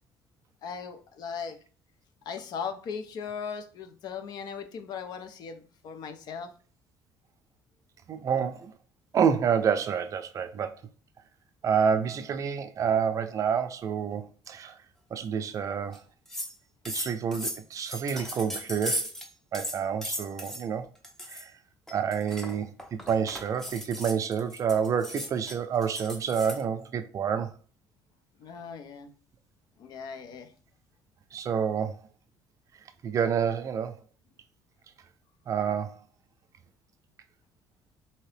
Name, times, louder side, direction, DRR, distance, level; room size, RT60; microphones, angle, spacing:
voice 1, 0.6-1.6 2.3-6.5 28.4-29.1 29.8-30.5, left 6 dB, 60° left, 0.5 m, -38 dB
voice 2, 8.1-8.7 9.1-10.7 11.6-14.8 15.1-16.0 16.9-19.1 19.5-20.9 21.3-21.5 21.9-27.5 31.3-32.0 33.0-34.0 35.5-36.0, right 7 dB, 45° right, 0.4 m, -28 dB
sound 1, 15.9-16.0 16.3-16.5 16.9-19.3 19.5-20.6 21.0-21.4 21.9-26.6, equal, 5° left, 0.6 m, -36 dB
2.9 x 2.7 x 3.3 m
cardioid pair, 110°, 8 cm